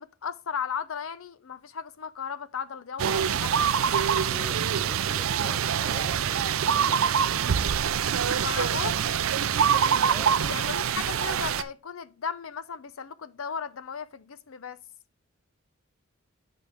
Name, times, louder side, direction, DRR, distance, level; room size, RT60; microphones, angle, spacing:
voice 1, 0.0-3.5 8.2-9.0 10.3-14.8, left 6 dB, 85° left, 0.6 m, -36 dB
sound 1, 3.0-11.6, right 7 dB, 85° right, 0.5 m, -25 dB
voice 2, 4.2-7.0 10.1-10.4, left 1 dB, ahead, 0.6 m, -44 dB
9.1 x 5.2 x 3.5 m
head